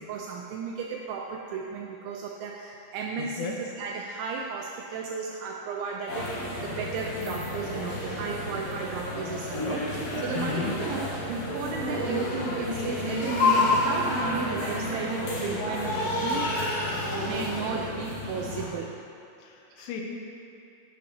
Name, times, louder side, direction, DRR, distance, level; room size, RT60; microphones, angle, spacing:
voice 1, 0.1-16.7 17.2-19.0 19.8-20.0, right 5 dB, 85° right, 0 dB, 2.7 m, -34 dB
voice 2, 3.2-3.6 10.4-10.7 19.4-20.0, left 6 dB, 85° left, 0 dB, 3.4 m, -34 dB
sound 1, 6.1-18.7, left 2 dB, 60° left, 2.1 m, -29 dB
11.5 x 10.0 x 2.9 m, 2.6 s
omnidirectional pair, 5.9 m